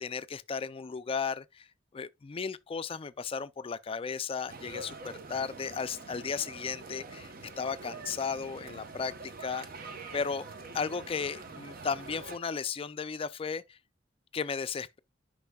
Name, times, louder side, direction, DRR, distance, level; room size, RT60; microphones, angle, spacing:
voice 1, 0.0-1.7 1.9-9.7 10.1-10.4 10.7-13.8 14.3-15.0, left 5 dB, 30° left, 0.4 m, -35 dB
sound 1, 4.5-12.4, right 3 dB, 50° right, 0.9 m, -45 dB
10.5 x 5.4 x 2.3 m
head